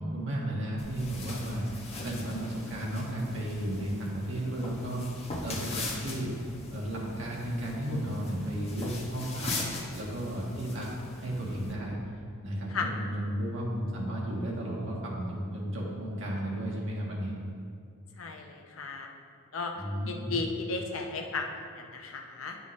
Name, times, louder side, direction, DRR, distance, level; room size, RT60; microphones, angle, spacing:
voice 1, 0.0-1.6 2.0-5.0 5.4-6.3 6.7-9.5 9.9-10.9 11.2-12.0 12.4-17.3 19.8-20.4, right 1 dB, 65° right, -4 dB, 1.6 m, -33 dB
sound 1, 0.8-11.7, left 2 dB, 30° left, 1.0 m, -40 dB
voice 2, 18.2-19.1 19.5-19.7 20.1-21.5 21.8-22.6, left 4 dB, 75° left, 3 dB, 0.8 m, -34 dB
9.6 x 5.5 x 3.2 m, 2.2 s
head